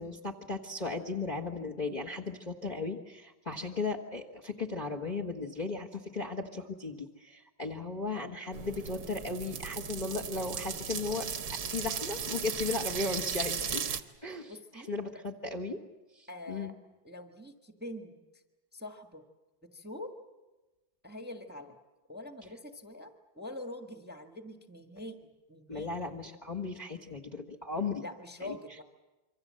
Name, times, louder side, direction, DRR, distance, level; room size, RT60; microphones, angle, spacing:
voice 1, 0.0-11.3 11.6-13.8 14.2-15.8 16.2-16.7 25.7-28.0 28.4-28.6, left 3 dB, 25° left, 3 dB, 1.3 m, -36 dB
sound 1, 8.5-14.0, right 7 dB, 65° right, 1.9 m, -36 dB
voice 2, 14.5-15.0 16.3-16.7 17.0-18.4 18.7-19.2 19.6-20.1 21.0-21.8 22.1-25.2 25.5-26.1 28.0-28.8, left 1 dB, 5° right, 5 dB, 1.4 m, -44 dB
27.0 x 24.5 x 7.6 m, 1.1 s
omnidirectional pair, 2.1 m